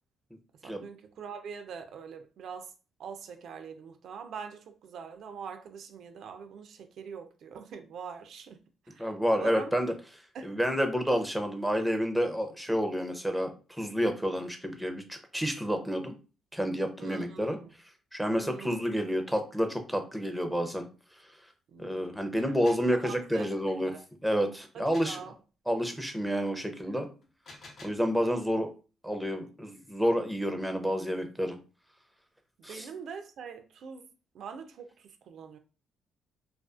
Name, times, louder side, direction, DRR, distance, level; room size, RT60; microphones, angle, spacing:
voice 1, 0.6-2.7 3.0-8.6 8.9-9.7 10.3-10.5 17.0-17.7 18.3-18.8 21.7-22.2 22.9-23.5 23.9-24.0 24.7-25.3 32.6-34.1 34.3-35.6, right 6 dB, 70° right, 0.3 m, -44 dB
voice 2, 9.0-9.9 10.4-16.1 16.5-17.6 18.1-20.8 21.8-24.0 24.2-25.2 25.7-27.1 27.8-28.7 29.0-31.6 32.6-32.9, equal, ahead, 0.5 m, -29 dB
sound 1, 22.6-22.9 24.9-25.2 27.2-28.1, left 2 dB, 55° left, 0.7 m, -50 dB
2.4 x 2.3 x 2.3 m
cardioid pair, 90°, 0 cm